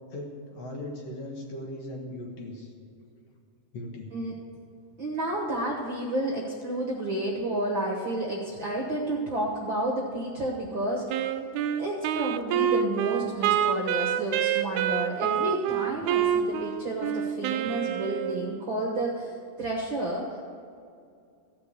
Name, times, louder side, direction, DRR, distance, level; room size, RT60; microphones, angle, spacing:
voice 1, 0.1-2.7 3.7-4.1, left 1 dB, 60° left, -1 dB, 2.3 m, -38 dB
voice 2, 5.0-11.2 11.7-20.4, right 1 dB, 55° right, -1 dB, 1.5 m, -31 dB
Wind instrument woodwind instrument, 11.1-18.6, right 9 dB, 80° right, 1.8 m, -27 dB
15.5 x 5.8 x 8.1 m, 2.4 s
omnidirectional pair, 3.7 m